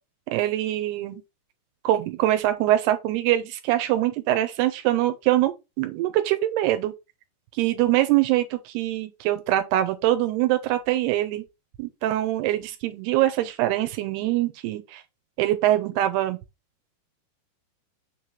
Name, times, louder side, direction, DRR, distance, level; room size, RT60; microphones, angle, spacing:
voice 1, 0.3-1.2 1.8-6.9 7.6-11.4 11.8-15.0 15.4-16.4, right 14 dB, 85° right, 2.8 m, -23 dB
6.6 x 3.3 x 5.5 m
omnidirectional pair, 4.7 m